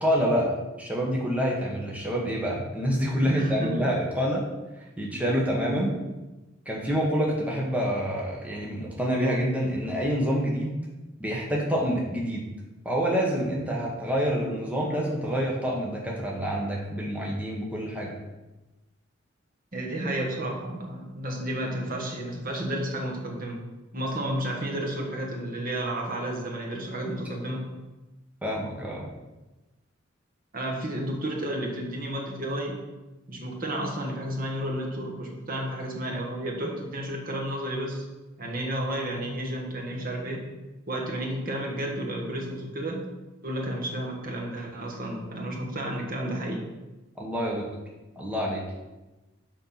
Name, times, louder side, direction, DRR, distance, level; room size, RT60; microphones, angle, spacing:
voice 1, 0.0-4.4 5.0-6.0 6.6-10.8 11.2-12.4 12.8-18.1 28.4-29.1 47.2-47.7 48.2-48.6, equal, 10° right, -3 dB, 1.3 m, -27 dB
voice 2, 3.2-3.8 19.7-23.6 23.9-27.7 30.5-32.8 33.3-38.0 38.4-40.5 40.9-43.0 43.4-46.7, right 1 dB, 45° right, 0 dB, 1.4 m, -32 dB
6.7 x 5.7 x 5.7 m, 1.1 s
head